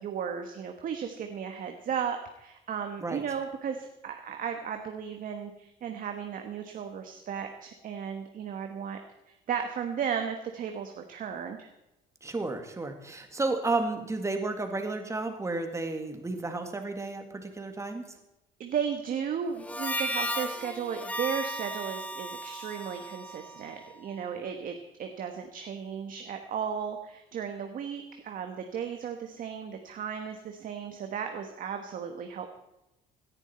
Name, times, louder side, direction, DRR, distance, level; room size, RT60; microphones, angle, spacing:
voice 1, 0.0-9.0 9.3-11.7 18.6-32.5, right 7 dB, 55° right, 5 dB, 1.3 m, -35 dB
voice 2, 12.2-18.0, right 3 dB, 15° right, 6 dB, 2.0 m, -32 dB
Harmonica, 19.6-24.2, equal, 10° left, 1.0 m, -35 dB
17.5 x 11.0 x 4.3 m, 0.91 s
cardioid pair, 110°, 17 cm